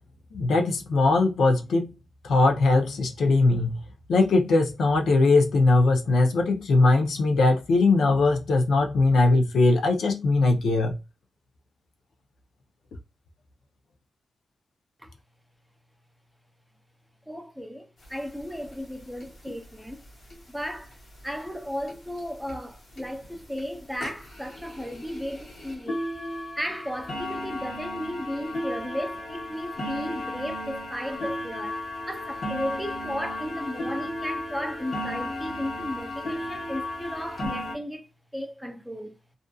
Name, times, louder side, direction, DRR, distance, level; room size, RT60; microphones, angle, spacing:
voice 1, 0.3-1.9 2.2-3.7 4.1-10.9, left 3 dB, 85° left, 0.5 m, -20 dB
voice 2, 17.3-20.0 20.5-26.1 26.6-38.1 38.3-39.2, equal, ahead, 0.4 m, -35 dB
sound 1, 18.0-18.1 18.4-18.5 18.7-18.9 19.2-19.6 20.3-20.4 20.9-21.0 21.4-21.5 21.9-22.0 22.5-22.6 23.0-23.2 23.6-23.7 24.0-37.8, left 1 dB, 60° left, 1.1 m, -34 dB
2.5 x 2.4 x 2.2 m
wide cardioid pair, 150°, 0 cm